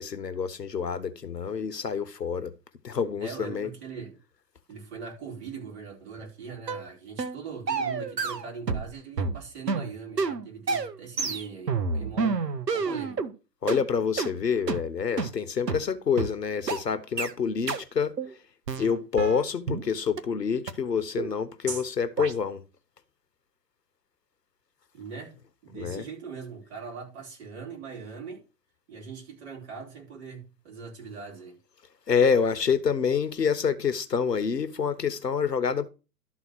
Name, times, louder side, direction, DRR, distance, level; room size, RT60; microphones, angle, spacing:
voice 1, 0.0-2.5 2.8-3.7 13.6-18.1 18.8-22.6 25.7-26.0 32.1-35.9, left 6 dB, 75° left, 1.1 m, -27 dB
voice 2, 3.2-4.1 4.7-12.4 12.7-13.2 24.9-25.4 25.6-28.4 28.9-31.6, right 5 dB, 40° right, 4.5 m, -41 dB
sound 1, 6.7-6.9 7.2-7.4 7.7-8.9 9.2-13.3 13.7-13.8 14.2-14.3 14.7-14.8 15.2-15.3 15.7-15.8 16.2-16.3 16.7-16.8 17.2-17.3 17.7-17.8 18.2-18.3 18.7-19.8 20.2-20.3 20.7-20.8 21.2-21.3 21.7-21.8 22.2-22.3, right 4 dB, 75° right, 1.1 m, -29 dB
12.5 x 4.2 x 5.9 m
figure-of-eight pair, 110°, 49 cm